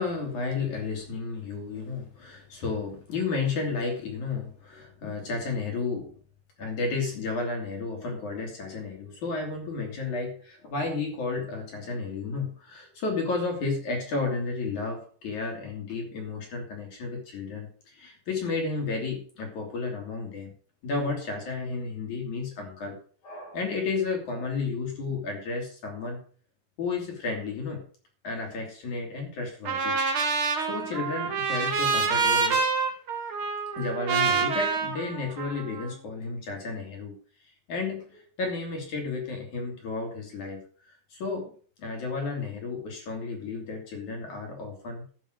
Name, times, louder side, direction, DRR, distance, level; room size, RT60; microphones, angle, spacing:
voice 1, 0.0-6.1 6.6-20.5 20.8-23.0 23.2-26.2 26.8-27.8 28.2-29.9 30.6-32.6 33.8-37.1 37.7-41.5 41.8-45.0, left 4 dB, 50° left, 1 dB, 3.6 m, -32 dB
Trumpet, 29.6-35.9, right 5 dB, 65° right, 1.3 m, -27 dB
12.5 x 6.5 x 6.3 m, 0.43 s
omnidirectional pair, 5.0 m